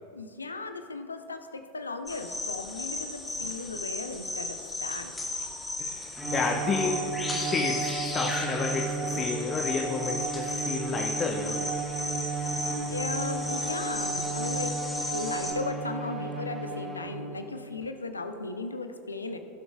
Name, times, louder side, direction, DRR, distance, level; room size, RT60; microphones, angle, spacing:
voice 1, 0.1-5.1 12.9-14.8 15.1-19.4, left 3 dB, 80° left, 8 dB, 0.6 m, -36 dB
sound 1, 2.1-15.5, left 2 dB, 10° left, 1.9 m, -35 dB
voice 2, 5.8-11.7, left 4 dB, 25° left, 1 dB, 0.8 m, -31 dB
Bowed string instrument, 6.2-17.4, right 4 dB, 10° right, 1.8 m, -34 dB
17.5 x 6.1 x 3.5 m, 2.7 s
figure-of-eight pair, 85°, 0 cm